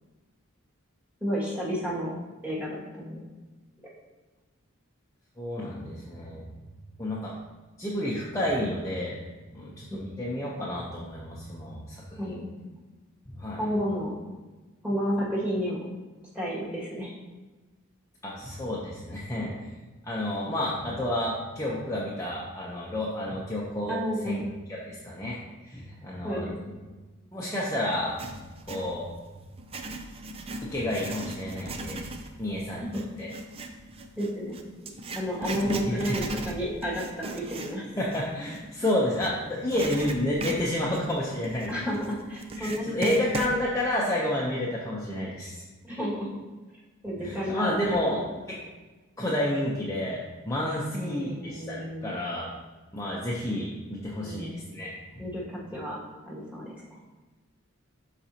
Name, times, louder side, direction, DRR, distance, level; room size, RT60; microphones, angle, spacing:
voice 1, 1.2-2.1 2.4-3.2 10.1-10.2 12.2-12.8 13.6-14.1 14.8-15.8 16.3-17.1 23.9-24.4 26.2-26.5 32.8-32.9 34.2-34.6 35.1-37.9 41.7-43.1 45.8-46.3 47.0-48.2 50.9-52.3 54.2-54.7 55.2-56.0 56.3-56.7, equal, 5° right, -6 dB, 2.0 m, -31 dB
voice 2, 5.4-6.4 7.0-7.3 7.8-9.2 9.5-12.3 13.3-13.6 18.2-19.5 20.0-24.0 24.2-24.4 24.7-26.5 27.3-28.4 28.6-29.1 30.6-32.0 32.4-32.9 33.2-33.3 35.5-36.2 38.0-41.7 42.5-45.6 47.2-48.2 48.5-48.6 49.2-50.2 50.4-52.5 52.9-54.9, left 1 dB, 15° left, -6 dB, 0.8 m, -30 dB
Writing, 27.9-28.9 29.5-39.3 39.7-43.6, right 2 dB, 25° right, 0.5 m, -37 dB
12.0 x 4.1 x 2.9 m, 1.2 s
head